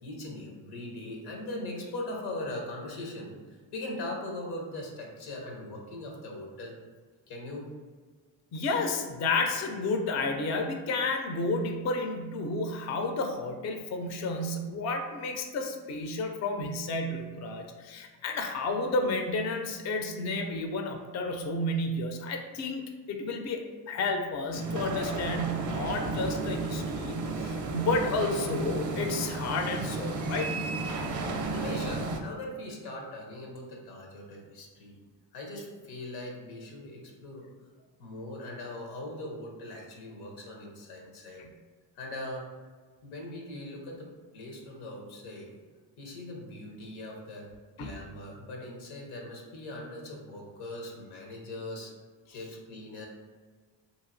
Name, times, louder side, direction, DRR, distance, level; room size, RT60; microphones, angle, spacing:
voice 1, 0.0-6.7 7.3-7.7 31.5-35.0 35.3-37.5 38.0-41.4 42.0-42.5 43.0-44.1 44.3-45.6 46.0-47.5 47.8-51.9 52.3-53.0, left 1 dB, 85° left, 0 dB, 0.8 m, -40 dB
voice 2, 8.5-30.5 41.4-41.5 47.8-48.0, left 2 dB, 35° left, 4 dB, 0.4 m, -31 dB
sound 1, 24.5-32.2, right 3 dB, 40° right, 0.5 m, -33 dB
2.9 x 2.5 x 2.5 m, 1.4 s
supercardioid pair, 60°, 47 cm